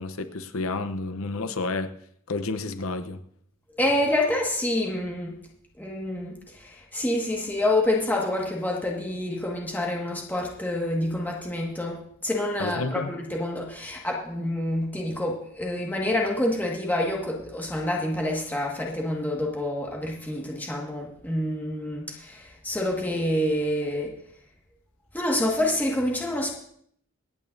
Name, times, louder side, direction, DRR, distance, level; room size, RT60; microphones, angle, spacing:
voice 1, 0.0-1.9 2.3-3.2 12.6-13.1, left 3 dB, 70° left, 0.9 m, -30 dB
voice 2, 3.8-5.3 5.8-24.1 25.1-26.6, left 1 dB, 10° left, 1.8 m, -27 dB
26.0 x 9.1 x 2.7 m
head